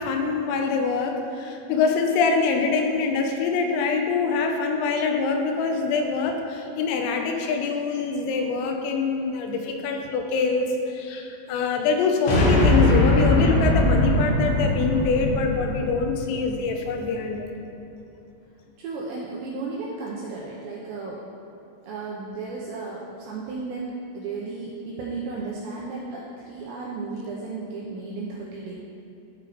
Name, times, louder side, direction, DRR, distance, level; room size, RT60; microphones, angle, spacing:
voice 1, 0.0-17.5, left 4 dB, 90° left, 3 dB, 3.4 m, -24 dB
sound 1, 12.3-16.7, left 1 dB, 70° left, 3.5 m, -21 dB
voice 2, 18.8-21.2 21.8-28.7, right 3 dB, 85° right, -5 dB, 2.5 m, -34 dB
13.0 x 4.9 x 3.0 m, 2.8 s
omnidirectional pair, 5.9 m